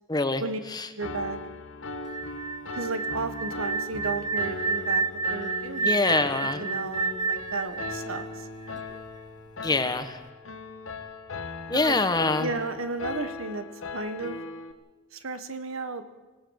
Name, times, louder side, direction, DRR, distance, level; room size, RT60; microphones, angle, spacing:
voice 1, 0.1-0.4 0.7-0.9 5.8-6.6 9.6-10.2 11.7-12.5, left 3 dB, 20° left, 10 dB, 1.2 m, -25 dB
voice 2, 0.9-1.4 2.7-5.0 5.3-5.9 6.6-8.5 11.7-12.0 12.4-13.7 13.9-14.4 15.1-16.0, right 3 dB, 80° right, 10 dB, 1.5 m, -33 dB
Piano, 1.0-14.7, left 3 dB, 70° left, 1.4 m, -38 dB
sound 1, 2.1-9.0, right 4 dB, 20° right, 0.6 m, -30 dB
25.5 x 17.5 x 6.5 m, 1.2 s
head